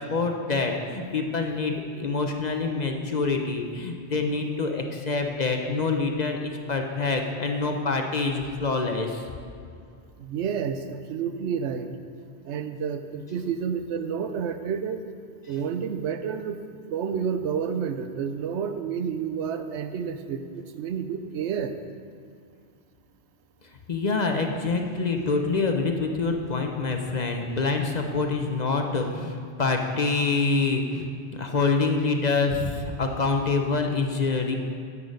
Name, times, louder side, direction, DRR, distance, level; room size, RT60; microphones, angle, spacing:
voice 1, 0.1-9.2 23.9-34.6, left 3 dB, 45° left, 3 dB, 0.7 m, -26 dB
voice 2, 10.2-11.9 12.5-15.0 15.5-16.6 16.9-21.7, right 7 dB, 75° right, 9 dB, 0.9 m, -30 dB
9.2 x 8.5 x 5.1 m, 2.4 s
omnidirectional pair, 1.2 m